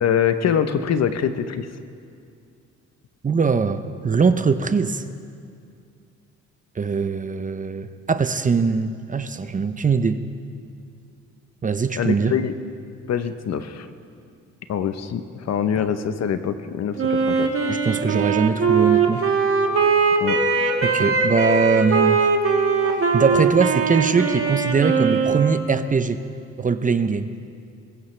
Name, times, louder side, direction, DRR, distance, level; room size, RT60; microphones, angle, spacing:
voice 1, 0.0-1.7 12.0-12.6 13.1-13.9 14.7-15.2 15.5-17.5 20.2-20.4, left 8 dB, 60° left, 10 dB, 0.9 m, -24 dB
voice 2, 3.2-5.0 6.8-10.2 11.6-12.4 17.7-19.2 20.8-22.2 23.1-26.2 26.6-27.3, right 5 dB, 25° right, 11 dB, 0.6 m, -21 dB
Wind instrument woodwind instrument, 17.0-25.8, right 5 dB, 45° right, 1.7 m, -21 dB
22.0 x 15.0 x 3.3 m, 2.4 s
cardioid pair, 90°, 30 cm